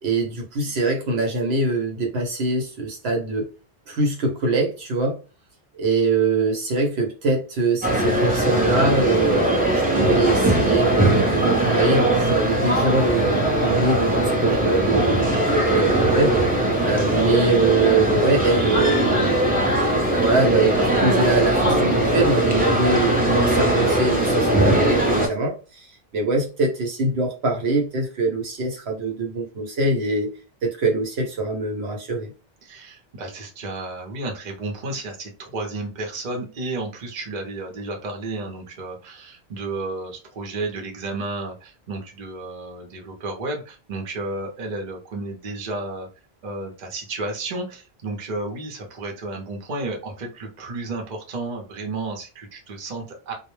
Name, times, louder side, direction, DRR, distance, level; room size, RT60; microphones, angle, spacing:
voice 1, 0.0-3.5 3.9-5.2 5.7-9.4 9.7-13.3 13.6-16.4 16.8-19.3 20.2-30.3 30.6-32.3, right 3 dB, 80° right, 1.0 m, -23 dB
sound 1, 7.8-25.3, right 1 dB, 10° right, 0.5 m, -20 dB
voice 2, 16.9-17.4 32.6-46.1 46.4-53.3, right 2 dB, 50° right, 0.8 m, -32 dB
2.2 x 2.1 x 3.0 m
omnidirectional pair, 1.1 m